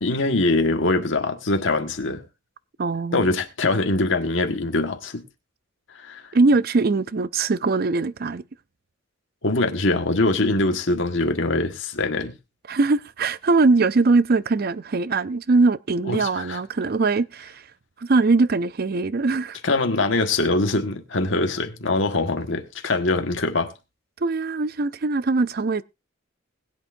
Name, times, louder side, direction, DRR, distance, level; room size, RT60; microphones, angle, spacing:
voice 1, 0.0-2.2 3.1-5.2 5.9-6.3 9.4-12.3 16.0-16.6 19.6-23.7, left 2 dB, 65° left, 1.6 m, -23 dB
voice 2, 2.8-3.3 6.3-8.4 12.7-17.6 18.0-19.6 24.2-25.8, right 3 dB, 50° right, 0.5 m, -21 dB
21.0 x 8.4 x 2.6 m
head